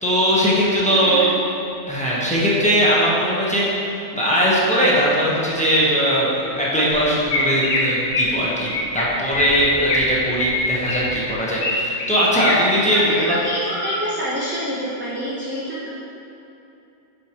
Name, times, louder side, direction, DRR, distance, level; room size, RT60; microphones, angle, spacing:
voice 1, 0.0-1.3 1.9-3.9 4.1-13.4, equal, 5° left, -7 dB, 0.9 m, -20 dB
voice 2, 0.9-1.3 12.9-15.9, equal, 15° right, -9 dB, 0.5 m, -27 dB
Chirp tweet, 6.9-7.0 7.3-7.8 8.1-8.3 8.7-9.0 9.3-10.0 10.4-11.7 12.0-12.5 13.0-13.2 13.7-14.0, left 2 dB, 65° left, 1.3 m, -23 dB
7.9 x 4.4 x 2.9 m, 2.8 s
omnidirectional pair, 1.3 m